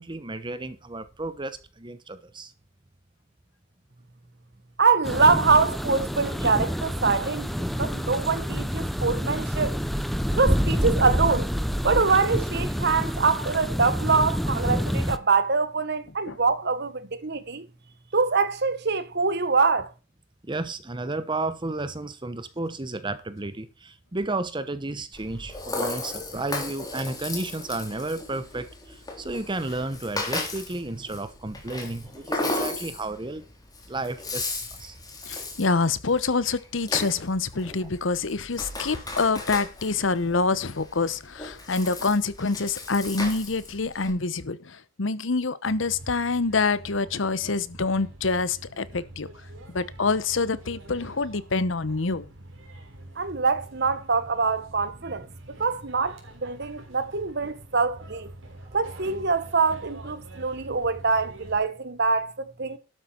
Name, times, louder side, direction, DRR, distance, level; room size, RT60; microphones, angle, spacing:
voice 1, 0.0-2.5 6.4-6.5 20.4-33.4 33.9-35.0 37.0-37.1 37.8-37.9, right 2 dB, 25° right, 1.0 m, -33 dB
voice 2, 4.8-9.8 10.3-11.5 11.8-17.7 18.1-19.9 53.2-55.3 55.6-58.3 58.7-62.8, right 4 dB, 60° right, 1.4 m, -24 dB
sound 1, 5.0-15.2, equal, ahead, 0.8 m, -27 dB
Rattle (instrument), 25.1-44.1, left 2 dB, 20° left, 3.4 m, -36 dB
voice 3, 35.3-49.3 49.7-52.3, left 4 dB, 75° left, 1.0 m, -26 dB
sound 2, 45.6-61.6, right 1 dB, 85° right, 3.9 m, -46 dB
12.5 x 8.1 x 4.4 m
head